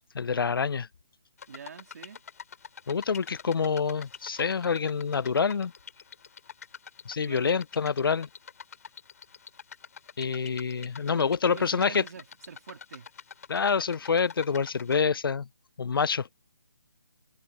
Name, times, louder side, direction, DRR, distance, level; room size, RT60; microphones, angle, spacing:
voice 1, 0.1-0.9 2.9-5.7 7.1-8.3 10.2-12.0 13.5-15.5 15.8-16.3, left 6 dB, 85° left, 0.5 m, -27 dB
sound 1, 1.4-15.0, left 7 dB, 45° left, 5.2 m, -47 dB
voice 2, 1.5-2.2 7.3-7.6 11.1-13.1, right 6 dB, 50° right, 3.7 m, -45 dB
hypercardioid pair, 170°, 12 cm